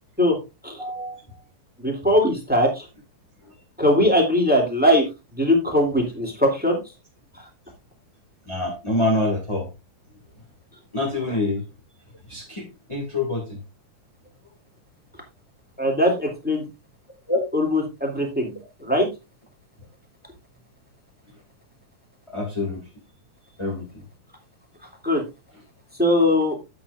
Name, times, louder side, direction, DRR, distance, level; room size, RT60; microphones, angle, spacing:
voice 1, 0.8-1.4 3.4-3.5 8.5-9.7 10.9-11.6 12.3-13.6 17.3-17.4 22.3-22.8 23.6-23.9, left 2 dB, 15° left, -2 dB, 1.4 m, -26 dB
voice 2, 1.8-2.9 3.8-5.0 5.3-6.8 15.8-16.6 17.5-19.1 25.0-25.2 26.0-26.5, left 1 dB, 5° right, -1 dB, 2.2 m, -20 dB
9.8 x 8.6 x 2.4 m, 0.26 s
omnidirectional pair, 3.5 m